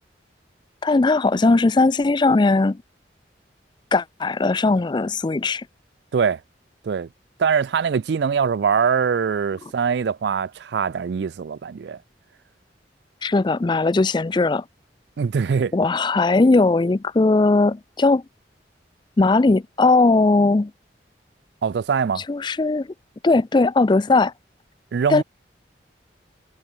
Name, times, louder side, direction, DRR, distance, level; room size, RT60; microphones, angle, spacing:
voice 1, 0.8-2.8 3.9-5.7 13.2-14.6 15.7-18.2 19.2-20.7 22.3-22.9 23.2-24.3 25.1-25.2, left 3 dB, 25° left, 0.4 m, -18 dB
voice 2, 7.4-12.0 15.2-15.7 21.6-22.2 24.9-25.2, right 6 dB, 70° right, 0.4 m, -22 dB
head